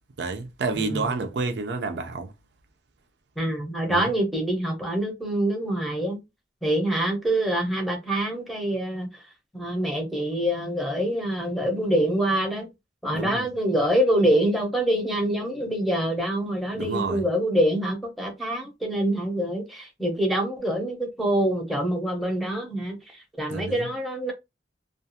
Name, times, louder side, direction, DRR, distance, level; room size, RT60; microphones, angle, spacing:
voice 1, 0.2-2.3 3.9-4.1 13.1-13.5 16.7-17.2 23.5-23.9, right 3 dB, 75° right, 0.5 m, -29 dB
voice 2, 0.7-1.2 3.4-6.2 6.6-9.2 9.5-12.7 13.0-24.3, right 1 dB, ahead, 0.7 m, -25 dB
2.4 x 2.3 x 2.7 m
head